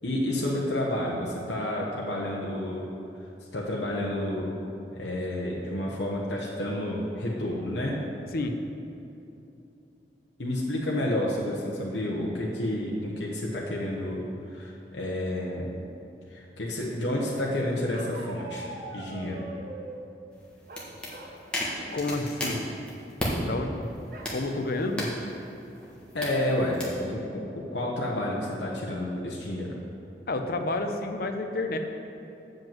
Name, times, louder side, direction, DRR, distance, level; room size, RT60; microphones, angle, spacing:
voice 1, 0.0-2.8 3.5-4.5 4.9-8.0 10.4-15.7 16.3-18.7 18.9-19.4 26.1-29.8, left 1 dB, 75° left, -4 dB, 1.1 m, -30 dB
Bark, 17.9-20.0 20.7-21.4 21.7-22.0 22.3-22.7 24.1-24.4 24.9-25.0 25.3-25.8, right 2 dB, 50° right, 0.9 m, -43 dB
sound 1, 20.3-23.4 23.8-27.0, left 1 dB, 5° left, 1.5 m, -36 dB
voice 2, 21.9-22.6 23.4-23.9 24.3-25.1 30.3-31.8, left 2 dB, 55° left, 5 dB, 0.7 m, -29 dB
7.5 x 5.2 x 7.4 m, 2.8 s
head